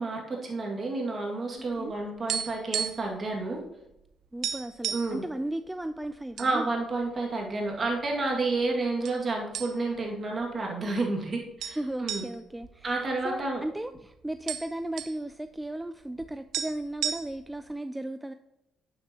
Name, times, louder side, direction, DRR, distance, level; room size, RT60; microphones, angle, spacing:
voice 1, 0.0-3.6 4.9-5.2 6.4-12.2 12.8-13.6, right 3 dB, 40° right, -1 dB, 2.1 m, -30 dB
sound 1, 1.7-3.2 3.4-3.6 4.0-4.1 4.4-5.2 5.8-6.5 6.9-7.0 7.7-8.4 9.0-9.2 9.5-10.1 10.4-10.5 11.6-13.7 14.0-14.1 14.3-15.2 16.2-16.3 16.5-17.6, right 8 dB, 75° right, 0.6 m, -34 dB
voice 2, 4.3-6.7 11.8-13.0 13.2-18.3, right 1 dB, 10° right, 9 dB, 0.3 m, -35 dB
9.0 x 6.9 x 2.9 m, 0.85 s
cardioid pair, 90°, 0 cm